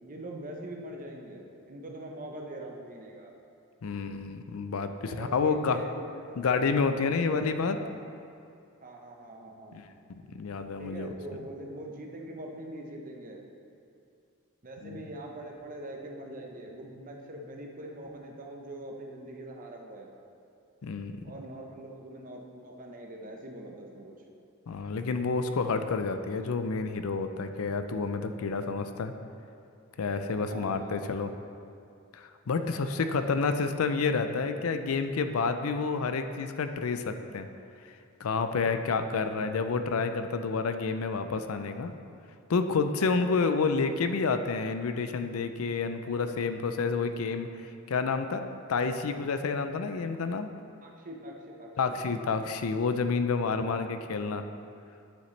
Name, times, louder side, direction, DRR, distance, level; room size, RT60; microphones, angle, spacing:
voice 1, 0.0-3.3 5.1-6.4 6.9-8.0 8.8-9.8 10.8-13.4 14.6-20.1 21.2-24.2 30.4-31.1 32.8-33.4 38.8-39.1 43.0-43.3 50.8-52.0, right 1 dB, 40° right, 1 dB, 0.9 m, -43 dB
voice 2, 3.8-5.8 6.4-7.8 9.7-9.8 10.1-11.1 14.8-15.0 20.8-21.2 24.7-29.1 30.0-31.3 32.1-37.5 38.2-41.9 42.5-48.4 48.7-50.5 51.8-54.4, left 4 dB, 80° left, 9 dB, 0.5 m, -29 dB
9.5 x 6.9 x 3.2 m, 2.5 s
head